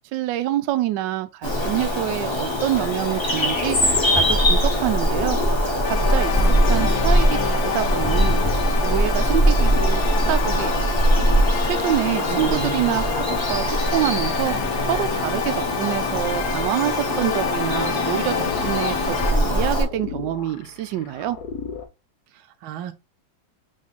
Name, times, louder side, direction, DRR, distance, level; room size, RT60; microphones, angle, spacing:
voice 1, 0.1-3.8 4.1-8.4 8.8-10.0 10.3-10.8 11.6-13.2 13.5-14.6 14.9-21.4, right 13 dB, 75° right, 1.1 m, -26 dB
Bird vocalization bird call bird song, 1.4-19.8, equal, 35° left, 0.4 m, -21 dB
sound 1, 2.7-21.9, left 5 dB, 60° left, 1.2 m, -37 dB
sound 2, 5.8-19.3, left 8 dB, 80° left, 1.4 m, -30 dB
voice 2, 12.0-12.9 22.3-23.0, right 10 dB, 90° right, 1.5 m, -36 dB
3.8 x 3.5 x 4.0 m
omnidirectional pair, 2.2 m